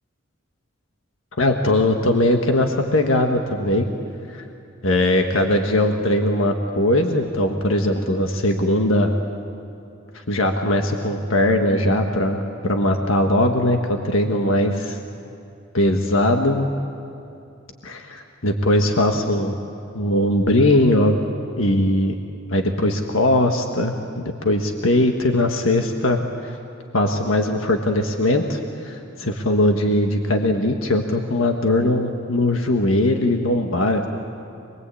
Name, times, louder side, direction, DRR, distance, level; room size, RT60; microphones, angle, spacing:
voice 1, 1.4-3.9 4.3-4.4 4.8-9.1 10.1-15.0 15.7-16.7 17.8-19.5 19.9-21.1 21.6-22.1 22.5-23.9 24.4-26.6 26.9-34.1, left 1 dB, 90° left, 3 dB, 1.5 m, -20 dB
26.0 x 21.5 x 8.5 m, 2.7 s
head